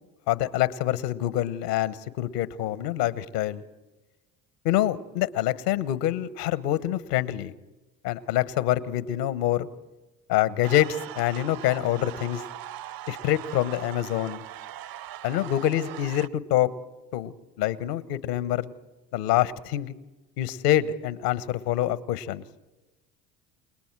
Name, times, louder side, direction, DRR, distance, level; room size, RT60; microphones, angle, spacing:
voice 1, 0.3-3.6 4.6-7.5 8.0-9.7 10.3-12.4 13.1-14.4 15.2-16.7 17.1-18.7 19.1-19.9 20.4-22.4, left 13 dB, 75° left, 15 dB, 1.2 m, -26 dB
sound 1, 10.6-16.3, right 12 dB, 50° right, 0.7 m, -40 dB
29.5 x 20.0 x 4.7 m, 1.1 s
hypercardioid pair, 65°, 47 cm